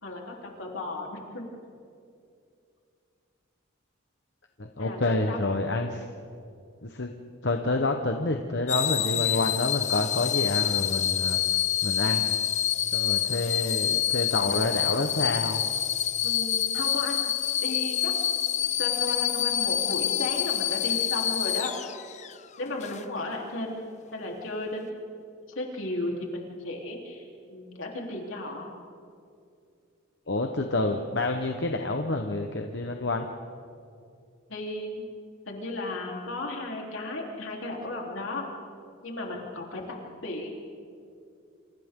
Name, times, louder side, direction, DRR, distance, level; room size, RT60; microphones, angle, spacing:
voice 1, 0.0-1.4 4.8-5.5 9.0-9.4 16.2-17.3 17.6-18.1 18.8-21.7 22.6-23.9 24.1-24.9 25.6-27.2 27.5-28.7 34.5-35.0 35.5-38.4 39.0-40.5, left 2 dB, 75° left, -1 dB, 3.7 m, -34 dB
voice 2, 4.6-6.0 6.8-7.1 7.4-11.4 11.8-12.2 12.9-15.6 30.3-33.3, left 2 dB, 55° left, 4 dB, 1.1 m, -28 dB
sound 1, 8.7-22.3 22.8-23.0, left 11 dB, 35° left, 0.5 m, -27 dB
28.0 x 28.0 x 3.8 m, 2.4 s
head